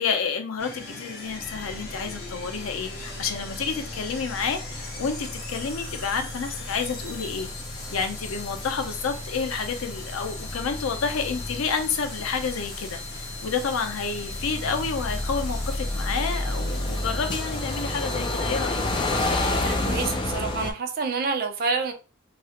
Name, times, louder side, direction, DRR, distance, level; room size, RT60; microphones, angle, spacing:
voice 1, 0.0-7.5 7.9-18.8, left 5 dB, 90° left, 0.5 m, -29 dB
sound 1, 0.6-20.1, left 3 dB, 50° left, 0.8 m, -40 dB
sound 2, 1.3-20.7, left 1 dB, 25° left, 0.3 m, -32 dB
voice 2, 19.5-21.9, right 4 dB, 45° right, 0.4 m, -28 dB
2.4 x 2.0 x 2.8 m
head